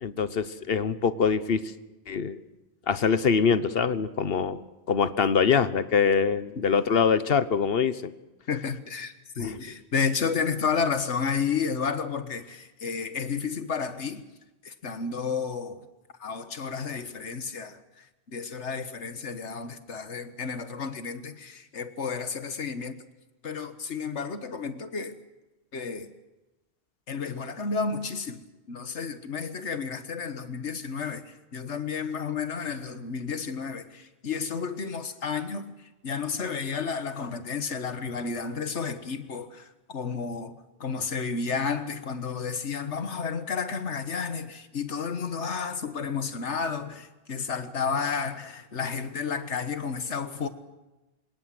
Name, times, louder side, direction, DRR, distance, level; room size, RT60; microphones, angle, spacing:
voice 1, 0.0-1.7 2.1-2.4 2.9-4.6 4.9-8.1 9.4-9.6, left 6 dB, 60° left, 1.2 m, -24 dB
voice 2, 8.5-14.2 14.6-15.9 16.2-23.0 23.4-25.2 25.7-26.1 27.1-35.7 36.0-50.5, left 5 dB, 90° left, 1.7 m, -31 dB
27.0 x 18.0 x 7.8 m
omnidirectional pair, 1.1 m